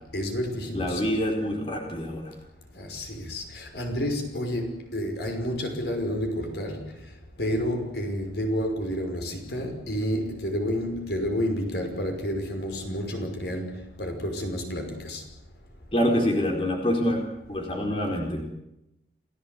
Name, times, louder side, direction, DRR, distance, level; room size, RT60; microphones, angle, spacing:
voice 1, 0.1-1.0 2.7-7.1 7.4-15.3, equal, 65° left, 5.8 m, -30 dB
voice 2, 0.7-2.3 15.9-17.2 17.5-18.4, equal, 30° left, 4.4 m, -26 dB
29.0 x 18.0 x 8.4 m
head